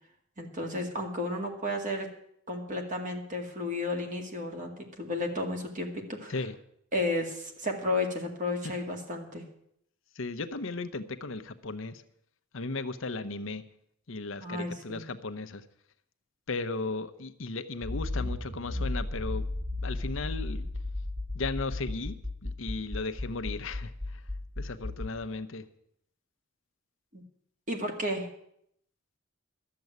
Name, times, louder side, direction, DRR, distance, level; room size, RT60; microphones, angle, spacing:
voice 1, 0.4-2.1 2.5-4.7 5.0-6.5 6.9-9.4 14.4-15.0 27.1-27.2 27.7-28.3, left 1 dB, 35° right, 3 dB, 2.1 m, -32 dB
voice 2, 10.2-12.0 12.5-13.6 14.1-15.6 16.5-19.4 19.8-20.7 21.3-22.2 22.4-23.9 24.6-25.6, left 3 dB, 65° left, 10 dB, 0.8 m, -35 dB
Accelerating revving vroom, 17.8-25.1, left 2 dB, 10° right, 1.3 m, -34 dB
12.0 x 7.7 x 9.4 m, 0.73 s
head